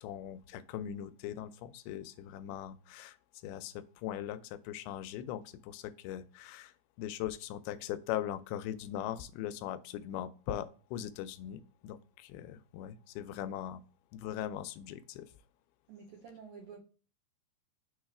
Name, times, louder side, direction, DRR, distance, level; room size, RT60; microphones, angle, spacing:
voice 1, 0.0-3.2 3.4-13.8 14.1-15.3, left 11 dB, 90° left, 13 dB, 2.5 m, -40 dB
voice 2, 15.9-16.8, right 6 dB, 80° right, 0 dB, 1.7 m, -50 dB
6.4 x 3.1 x 4.7 m, 0.38 s
omnidirectional pair, 4.4 m